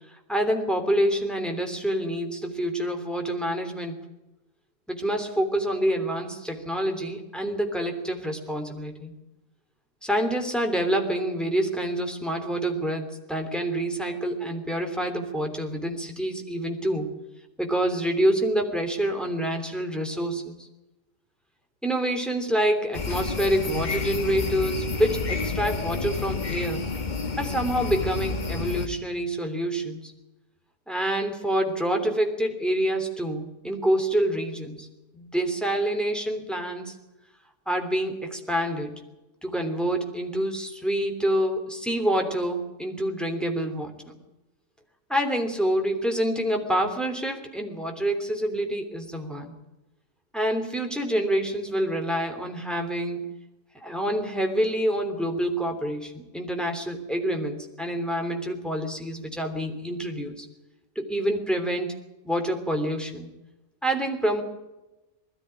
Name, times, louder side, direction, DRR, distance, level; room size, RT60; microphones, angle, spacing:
voice 1, 0.3-4.0 4.9-9.1 10.0-17.2 17.6-20.7 21.8-26.9 27.4-30.1 30.9-34.9 35.1-36.9 37.7-38.9 39.4-44.2 45.1-49.5 50.3-53.3 53.8-60.5 60.9-62.0 62.2-63.3 63.8-64.4, right 1 dB, ahead, 3 dB, 3.1 m, -27 dB
sound 1, 22.9-28.9, left 4 dB, 35° left, 1.3 m, -30 dB
20.5 x 14.0 x 9.9 m, 1.0 s
omnidirectional pair, 1.4 m